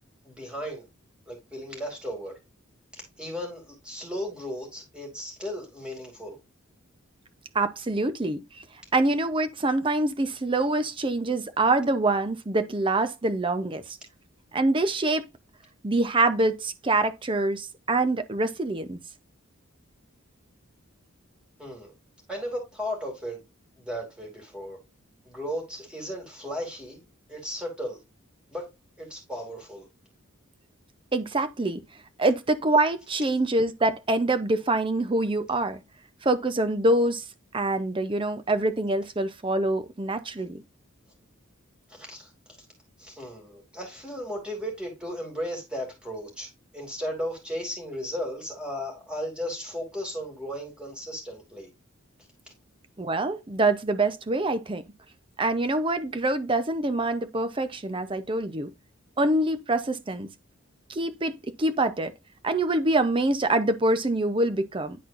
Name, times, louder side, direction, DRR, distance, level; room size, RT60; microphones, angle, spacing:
voice 1, 0.2-0.9 1.3-2.4 2.9-6.4 21.6-21.9 22.3-23.4 23.8-24.8 25.3-28.0 28.5-28.7 29.0-29.9 41.9-42.3 43.0-51.7, equal, 5° right, 2.5 m, -35 dB
voice 2, 7.5-8.4 8.9-14.0 14.5-15.3 15.8-19.0 31.1-31.8 32.2-35.8 36.2-37.2 37.5-40.6 53.0-54.8 55.4-58.7 59.2-60.3 60.9-62.1 62.4-65.0, right 2 dB, 25° right, 0.6 m, -25 dB
10.0 x 4.2 x 2.5 m
head